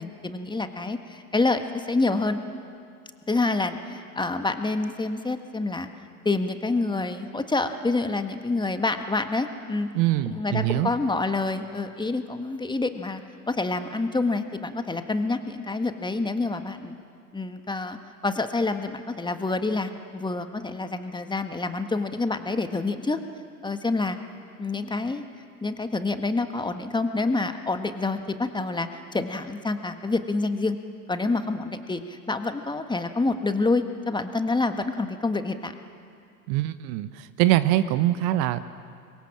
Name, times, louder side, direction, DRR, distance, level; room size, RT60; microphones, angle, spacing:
voice 1, 0.0-2.4 3.3-5.9 6.2-9.9 10.3-13.2 13.5-16.9 17.3-18.0 18.2-23.2 23.6-24.2 24.6-25.2 25.6-30.8 31.1-35.7, left 3 dB, 10° left, 8 dB, 1.5 m, -27 dB
voice 2, 9.9-10.9 36.5-38.6, right 14 dB, 50° right, 13 dB, 1.1 m, -23 dB
26.0 x 22.5 x 7.4 m, 2.4 s
figure-of-eight pair, 80°, 45 cm